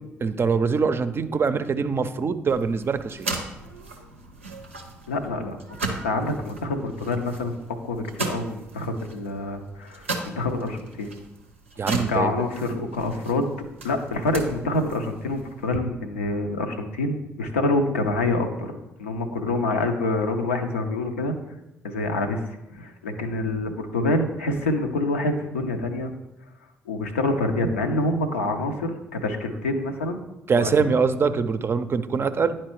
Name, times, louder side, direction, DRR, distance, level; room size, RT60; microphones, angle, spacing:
voice 1, 0.2-3.3 11.8-12.3 30.5-32.5, right 5 dB, 35° right, 11 dB, 0.4 m, -23 dB
sound 1, 2.5-15.8, right 3 dB, 90° right, 0.5 m, -37 dB
voice 2, 5.1-5.6 5.9-7.6 7.8-11.1 12.1-13.5 13.8-21.3 21.8-22.4 22.7-26.1 26.9-30.2 30.5-31.0, left 2 dB, 85° left, 4 dB, 0.5 m, -26 dB
9.9 x 4.3 x 3.0 m, 0.96 s
figure-of-eight pair, 45°, 7 cm